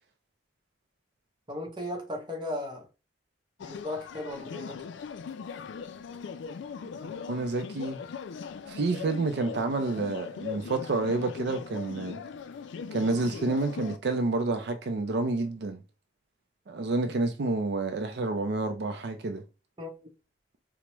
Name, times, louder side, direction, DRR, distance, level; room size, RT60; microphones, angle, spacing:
voice 1, 1.5-2.9 3.6-4.8 19.8-19.9, left 1 dB, 25° right, 0.6 m, -36 dB
sound 1, 3.6-14.0, left 6 dB, 80° left, 0.3 m, -40 dB
voice 2, 7.3-8.0 8.7-12.2 12.9-15.8 16.7-19.4, right 3 dB, 65° right, 0.4 m, -29 dB
4.5 x 2.1 x 2.9 m
head